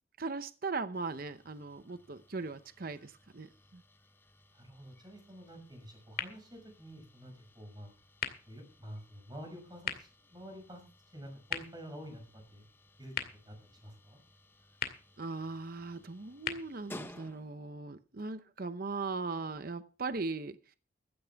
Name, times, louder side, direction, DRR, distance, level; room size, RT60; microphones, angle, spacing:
voice 1, 0.2-3.8 15.2-20.6, right 3 dB, 45° right, 11 dB, 0.8 m, -39 dB
sound 1, 0.9-17.8, left 1 dB, 10° left, 0.9 m, -57 dB
voice 2, 4.5-7.9 8.5-10.8 11.1-12.6 13.0-13.1 13.5-14.2, equal, 20° right, 4 dB, 5.8 m, -49 dB
sound 2, 6.1-18.0, left 8 dB, 50° left, 2.2 m, -45 dB
16.0 x 13.5 x 3.5 m, 0.37 s
head